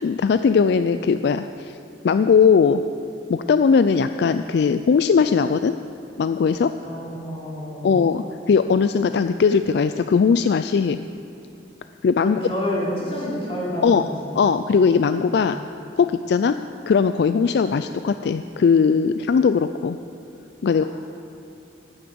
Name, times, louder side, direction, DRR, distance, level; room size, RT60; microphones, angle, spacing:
voice 1, 0.0-1.8 2.0-2.8 3.3-5.8 6.2-6.7 7.8-11.0 12.0-12.4 13.8-14.0 14.4-15.6 16.0-16.6 16.9-20.0 20.6-20.8, left 5 dB, 70° left, 10 dB, 0.3 m, -19 dB
voice 2, 6.8-8.0 12.2-14.4, equal, 35° left, -5 dB, 3.7 m, -29 dB
12.5 x 9.7 x 6.9 m, 2.5 s
head